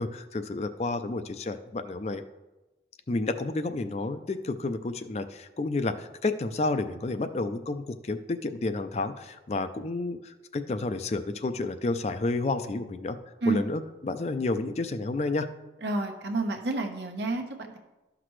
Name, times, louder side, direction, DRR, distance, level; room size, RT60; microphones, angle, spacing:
voice 1, 0.0-2.2 3.1-13.2 13.5-15.5, left 2 dB, 35° left, 10 dB, 0.4 m, -30 dB
voice 2, 15.8-17.8, right 3 dB, 80° right, 2 dB, 1.1 m, -29 dB
12.0 x 5.9 x 3.2 m, 1.1 s
head